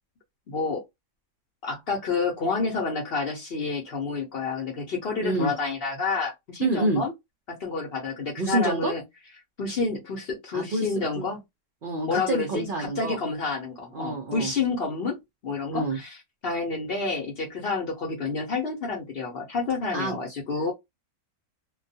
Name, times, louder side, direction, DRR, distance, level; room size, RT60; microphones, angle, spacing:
voice 1, 0.5-0.8 1.6-7.1 7.5-9.0 9.6-11.4 12.1-15.2 15.4-16.2 16.4-20.7, left 4 dB, 55° left, 0.8 m, -29 dB
voice 2, 5.2-5.5 6.6-7.0 8.4-8.9 10.5-11.3 11.8-13.2 13.9-14.5 15.7-16.0 19.9-20.2, right 2 dB, 60° right, 0.5 m, -27 dB
2.2 x 2.2 x 2.6 m
omnidirectional pair, 1.5 m